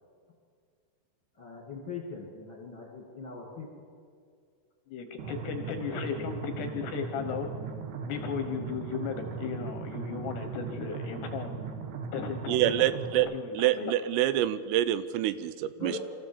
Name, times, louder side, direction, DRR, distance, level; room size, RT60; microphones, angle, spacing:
voice 1, 1.4-3.8 5.7-6.0 15.8-16.0, left 4 dB, 35° left, -1 dB, 2.0 m, -41 dB
voice 2, 4.9-7.5 8.1-11.6 12.1-12.9 13.2-13.9, left 7 dB, 70° left, 6 dB, 2.7 m, -36 dB
sound 1, 5.2-13.2, right 5 dB, 65° right, 3.3 m, -38 dB
voice 3, 12.5-13.3 13.6-16.0, right 13 dB, 85° right, 14 dB, 3.2 m, -26 dB
25.0 x 14.5 x 7.2 m, 2.2 s
omnidirectional pair, 5.9 m